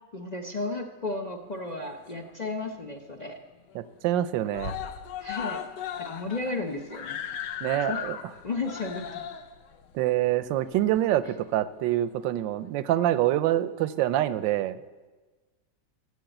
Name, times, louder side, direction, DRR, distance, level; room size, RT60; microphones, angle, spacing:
voice 1, 0.1-3.4 5.2-5.6 6.0-7.2 7.9-8.1 8.4-9.2, left 3 dB, 50° left, 3 dB, 0.5 m, -33 dB
Screaming, 1.6-2.6 2.9-3.0 3.3-3.4 3.7-4.2 4.5-11.3 12.2-12.3, left 9 dB, 70° left, 1.3 m, -37 dB
voice 2, 3.7-4.8 7.6-8.2 9.9-14.8, right 13 dB, 80° right, 14 dB, 1.3 m, -26 dB
14.5 x 6.9 x 7.9 m, 1.3 s
omnidirectional pair, 2.0 m